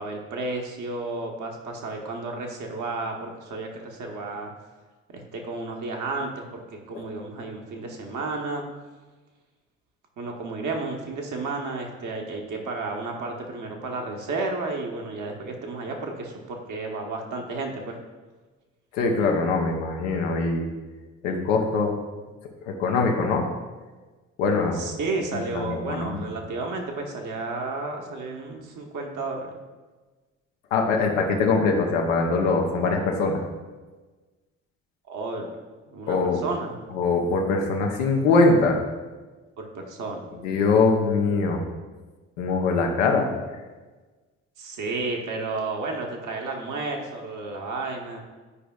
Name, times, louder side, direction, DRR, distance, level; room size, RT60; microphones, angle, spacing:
voice 1, 0.0-4.5 5.1-8.6 10.2-18.0 24.7-29.6 35.1-35.6 35.9-36.7 39.6-40.3 44.6-48.2, right 3 dB, 50° right, 1 dB, 1.2 m, -32 dB
voice 2, 18.9-20.7 21.2-22.0 22.6-23.5 24.4-24.8 25.3-26.2 30.7-33.4 36.1-36.4 36.9-38.8 40.4-41.6 42.4-43.3, left 3 dB, 80° left, 2 dB, 0.9 m, -22 dB
9.8 x 5.0 x 2.4 m, 1.3 s
hypercardioid pair, 45°, 38 cm